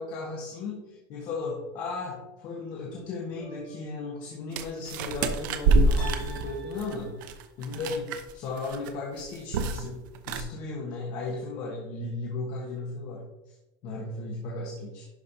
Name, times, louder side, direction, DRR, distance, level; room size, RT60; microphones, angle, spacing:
voice 1, 0.0-7.1 7.6-13.5 13.8-15.1, left 3 dB, 35° left, -2 dB, 1.3 m, -36 dB
sound 1, 3.4-4.1 6.0-7.4, right 3 dB, 10° left, 2.2 m, -45 dB
sound 2, 4.5-8.3 8.6-8.9 9.2-9.9 10.1-10.4, right 3 dB, 65° right, 0.8 m, -26 dB
11.5 x 5.3 x 2.7 m, 0.98 s
supercardioid pair, 180°, 11 cm